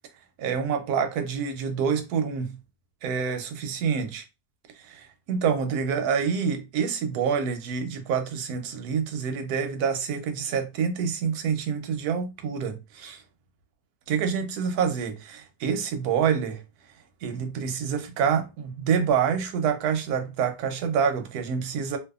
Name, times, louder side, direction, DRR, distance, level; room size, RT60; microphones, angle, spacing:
voice 1, 0.4-2.6 3.0-4.2 4.8-13.2 14.1-16.6 17.2-22.0, right 6 dB, 70° right, 1.0 m, -27 dB
2.6 x 2.4 x 2.3 m
omnidirectional pair, 1.9 m